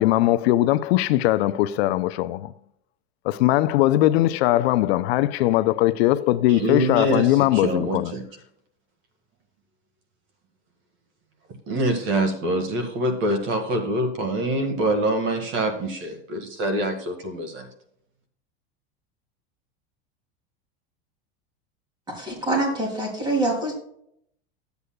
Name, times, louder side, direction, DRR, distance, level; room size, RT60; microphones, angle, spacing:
voice 1, 0.0-2.5 3.2-8.1, left 15 dB, 75° left, 0.6 m, -20 dB
voice 2, 6.5-8.2 11.7-17.7, right 1 dB, 40° right, 1.6 m, -25 dB
voice 3, 22.1-23.7, right 2 dB, 15° right, 2.8 m, -25 dB
12.0 x 8.2 x 2.3 m
supercardioid pair, 165°, 32 cm